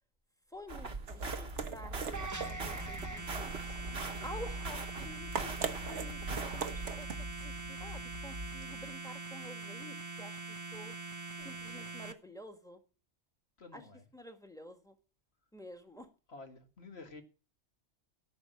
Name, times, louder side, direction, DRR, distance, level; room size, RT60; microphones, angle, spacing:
voice 1, 0.5-3.5 4.2-7.1 7.4-10.9 11.4-12.8 13.7-13.9 14.1-14.9 15.5-16.1, equal, 5° left, 1.6 m, -50 dB
sound 1, 0.7-7.0, right 4 dB, 60° right, 1.6 m, -43 dB
sound 2, 0.7-8.9, right 4 dB, 75° right, 1.5 m, -42 dB
sound 3, 2.1-12.1, right 3 dB, 15° right, 0.9 m, -43 dB
voice 2, 3.6-4.3 11.4-12.0 13.6-14.1 16.3-17.2, left 3 dB, 60° left, 2.2 m, -53 dB
13.5 x 6.2 x 7.9 m
omnidirectional pair, 1.2 m